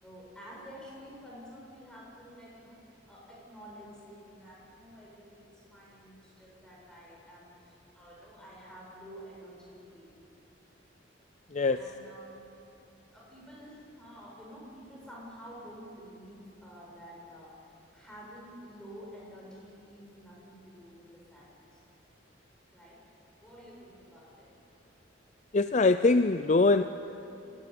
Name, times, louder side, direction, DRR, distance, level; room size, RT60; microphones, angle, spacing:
voice 1, 0.0-2.8 3.1-10.1 11.7-12.4 13.1-21.8 22.7-23.0 23.4-24.5, equal, 5° left, -4 dB, 7.1 m, -50 dB
voice 2, 11.5-11.9 25.5-26.8, left 3 dB, 35° left, 11 dB, 0.5 m, -23 dB
27.0 x 17.0 x 9.4 m, 2.8 s
head